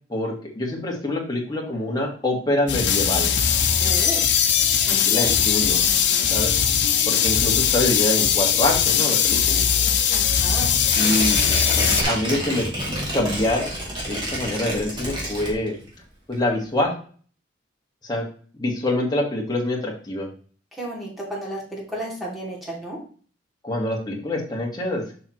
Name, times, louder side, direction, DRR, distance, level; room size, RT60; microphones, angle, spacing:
voice 1, 0.1-3.3 5.0-5.8 6.3-6.5 7.0-9.6 10.9-11.4 11.8-13.7 14.1-15.8 16.3-16.9 18.0-18.2 18.6-20.3 23.6-25.1, left 1 dB, 20° left, -1 dB, 1.7 m, -25 dB
sound 1, 2.7-12.0, left 8 dB, 60° left, 0.8 m, -20 dB
voice 2, 3.8-4.3 4.9-5.4 10.1-10.7 20.8-23.0, right 1 dB, ahead, -4 dB, 2.6 m, -33 dB
Tearing, 10.8-16.0 16.3-16.4, right 1 dB, 25° right, 2.1 m, -28 dB
7.0 x 5.6 x 3.1 m, 0.43 s
head